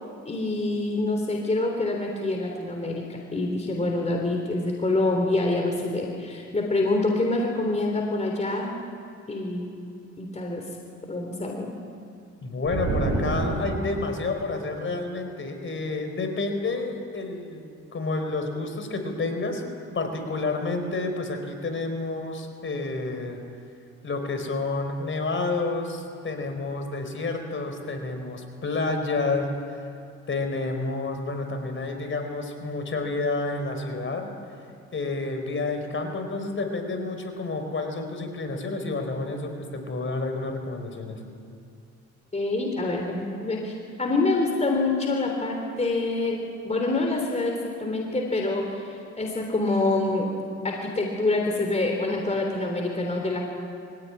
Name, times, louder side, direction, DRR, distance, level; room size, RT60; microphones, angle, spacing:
voice 1, 0.3-3.0 3.3-8.7 9.3-9.7 10.2-10.6 11.0-11.7 42.3-50.3 50.6-53.5, left 2 dB, 20° left, 1 dB, 3.6 m, -26 dB
voice 2, 12.4-17.6 17.9-19.6 19.9-23.4 24.0-29.5 30.3-34.3 34.9-41.2, left 3 dB, 40° left, 5 dB, 4.5 m, -29 dB
sound 1, 12.7-14.3, right 2 dB, 60° right, 6.0 m, -27 dB
23.5 x 16.5 x 9.9 m, 2.5 s
cardioid pair, 90°, 30 cm